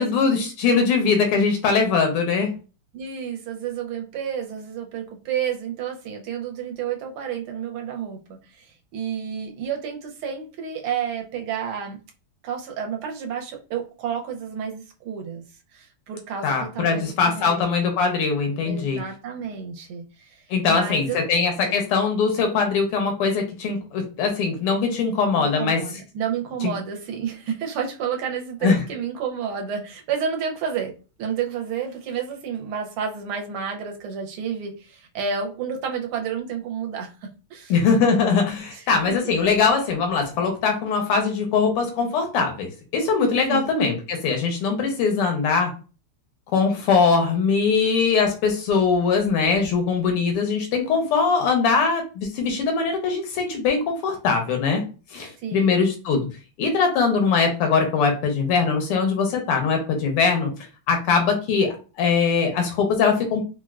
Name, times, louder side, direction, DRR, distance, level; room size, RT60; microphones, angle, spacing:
voice 1, 0.0-2.5 16.4-19.0 20.5-25.8 26.6-26.7 28.6-28.8 37.7-45.7 46.5-54.8 55.1-56.3 56.6-60.5 60.9-63.4, left 5 dB, 85° left, 3 dB, 1.7 m, -21 dB
voice 2, 2.9-12.0 12.4-15.4 15.7-17.6 18.6-21.2 21.6-21.8 25.4-37.7 38.1-38.3 38.7-39.2 39.4-39.5 43.5-43.7 55.4-55.9, right 7 dB, 80° right, 2 dB, 1.5 m, -30 dB
4.3 x 2.1 x 2.3 m, 0.34 s
omnidirectional pair, 2.4 m